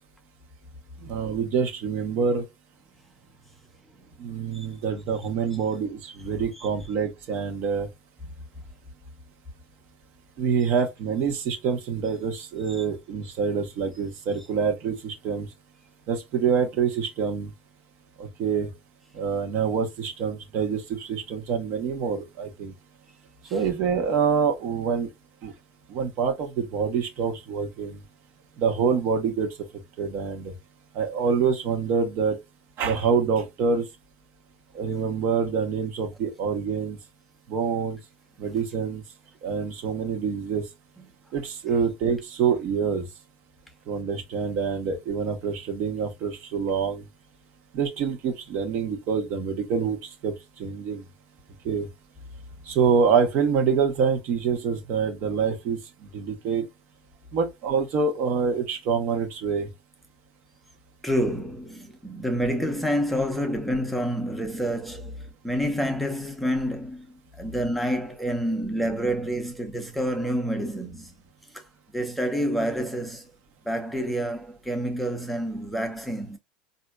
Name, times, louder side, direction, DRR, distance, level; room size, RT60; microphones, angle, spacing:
voice 1, 1.1-2.4 4.2-7.9 10.4-15.5 16.1-17.5 18.2-18.7 19.1-22.7 23.5-25.1 25.4-25.5 25.9-28.0 28.6-29.5 30.0-30.5 30.9-32.4 32.8-33.8 34.7-37.0 37.5-38.0 38.4-39.0 39.4-40.6 41.3-43.1 43.9-47.0 47.7-50.3 50.6-51.0 51.6-51.9 52.7-55.8 56.1-56.6 57.3-59.7, right 6 dB, 50° right, 1.1 m, -26 dB
voice 2, 61.0-67.1 67.4-71.1 71.5-71.7 71.9-73.3 73.6-76.4, equal, ahead, 0.8 m, -28 dB
4.1 x 2.7 x 2.4 m
hypercardioid pair, 100°, 5 cm